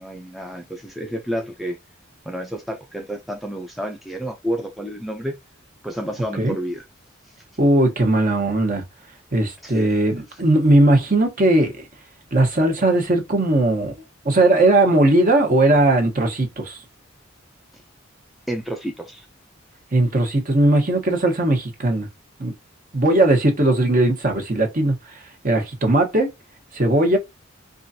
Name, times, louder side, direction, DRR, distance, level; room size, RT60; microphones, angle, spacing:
voice 1, 0.0-1.8 2.3-5.4 5.8-6.8 9.6-10.0 18.5-19.3, equal, ahead, 0.5 m, -30 dB
voice 2, 7.6-8.8 9.3-11.8 12.3-13.9 14.2-16.8 19.9-22.1 22.4-22.5 22.9-24.9 25.4-26.3 26.7-27.2, right 1 dB, 45° right, 1.3 m, -18 dB
4.8 x 2.5 x 2.7 m
head